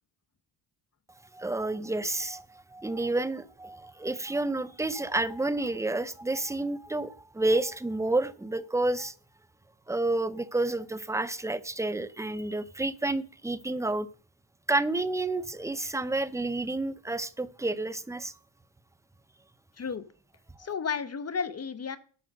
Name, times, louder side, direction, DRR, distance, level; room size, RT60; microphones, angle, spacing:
voice 1, 1.3-9.1 9.9-14.1 14.7-18.3, right 2 dB, 5° right, 0.5 m, -30 dB
voice 2, 20.6-22.0, left 6 dB, 30° left, 0.8 m, -32 dB
11.5 x 7.7 x 6.5 m
cardioid pair, 140°, 48 cm